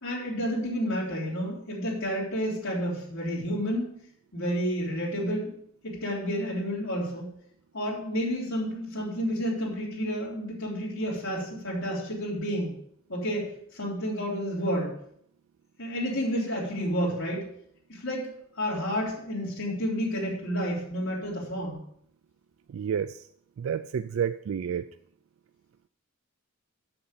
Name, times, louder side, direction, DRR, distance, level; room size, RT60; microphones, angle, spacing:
voice 1, 0.0-3.9 4.3-5.5 5.8-7.3 7.7-12.7 13.1-14.9 15.8-17.5 17.9-18.3 18.6-21.8, equal, 65° left, -7 dB, 3.2 m, -30 dB
voice 2, 22.7-23.3 23.6-24.9, right 8 dB, 70° right, 13 dB, 0.3 m, -30 dB
6.8 x 6.8 x 7.3 m, 0.68 s
head